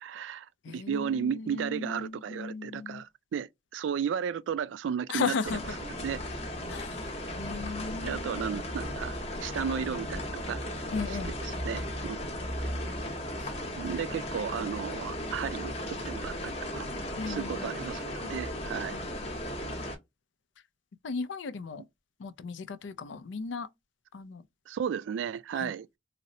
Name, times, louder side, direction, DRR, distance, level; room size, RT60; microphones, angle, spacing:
voice 1, 0.0-5.3 6.0-6.2 7.5-7.6 8.0-9.1 9.4-10.6 11.4-12.3 13.8-16.9 17.3-19.0 24.7-25.9, right 7 dB, 80° right, 0.3 m, -34 dB
voice 2, 0.6-3.0 5.1-5.6 6.7-7.1 7.4-8.5 10.9-11.3 13.4-13.5 17.2-17.7 18.8-19.1 21.0-21.8 22.2-23.7 24.1-24.5 25.5-25.7, left 4 dB, 75° left, 0.4 m, -36 dB
sound 1, 5.4-20.0, left 1 dB, 35° left, 0.9 m, -36 dB
3.9 x 2.0 x 2.6 m
head